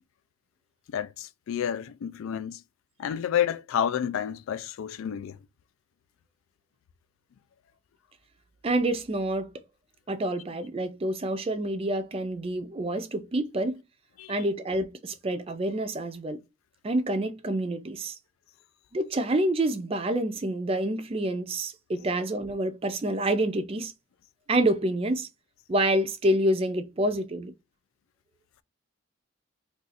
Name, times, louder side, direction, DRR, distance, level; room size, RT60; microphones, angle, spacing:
voice 1, 0.9-2.6 3.0-5.4 14.2-14.4, left 9 dB, 80° left, 0.3 m, -30 dB
voice 2, 8.6-9.5 10.1-13.8 14.3-16.4 16.8-18.1 18.9-23.9 24.5-25.3 25.7-27.5, right 1 dB, 30° right, 0.4 m, -27 dB
2.4 x 2.4 x 4.0 m
head